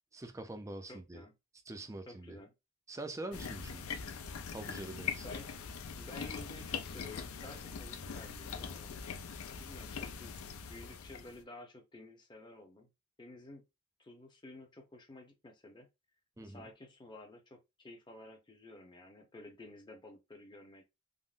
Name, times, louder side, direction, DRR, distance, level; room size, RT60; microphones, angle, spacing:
voice 1, 0.1-1.2 1.7-2.4 2.9-3.9 4.5-5.3 16.4-16.7, right 2 dB, 15° right, 0.4 m, -44 dB
voice 2, 0.9-1.3 2.1-2.5 5.2-5.7 6.0-9.0 9.6-12.9 13.2-13.6 14.0-15.9 16.4-20.8, left 2 dB, 20° left, 0.7 m, -52 dB
sound 1, 3.3-11.4, left 6 dB, 80° left, 0.4 m, -42 dB
3.6 x 2.1 x 2.4 m
head